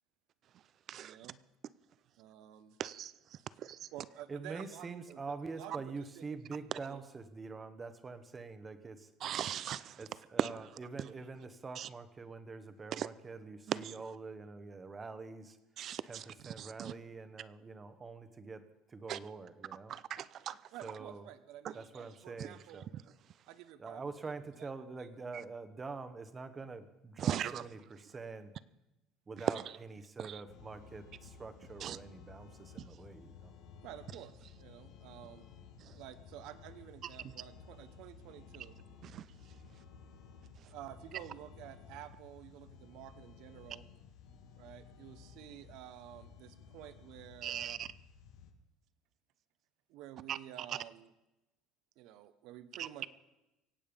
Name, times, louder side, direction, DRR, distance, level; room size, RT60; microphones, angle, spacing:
voice 1, 0.9-1.4 2.2-2.8 3.9-7.0 20.7-22.9 23.5-24.3 24.6-24.7 25.0-25.1 33.8-34.3 34.6-35.5 35.9-38.8 40.6-43.9 44.5-47.8 49.9-51.1 52.0-53.1, right 12 dB, 65° right, 0.9 m, -51 dB
voice 2, 2.8-3.1 3.6-3.9 9.2-10.0 10.4-10.5 11.8-11.9 13.0-13.1 13.7-13.9 15.8-16.9 19.1-19.2 19.9-20.5 21.6-21.7 27.2-27.6 30.2-30.4 31.8-32.0 35.8-35.9 39.0-39.2 47.4-47.9 50.3-50.4 52.8-52.9, right 10 dB, 40° right, 0.5 m, -38 dB
voice 3, 4.3-9.1 10.0-15.6 16.1-19.9 20.8-21.2 21.7-22.8 23.8-28.5 29.3-33.5, right 4 dB, 20° right, 1.1 m, -45 dB
sound 1, 30.5-48.5, left 6 dB, 70° left, 1.8 m, -55 dB
24.0 x 8.7 x 5.2 m
cardioid pair, 145°, 0 cm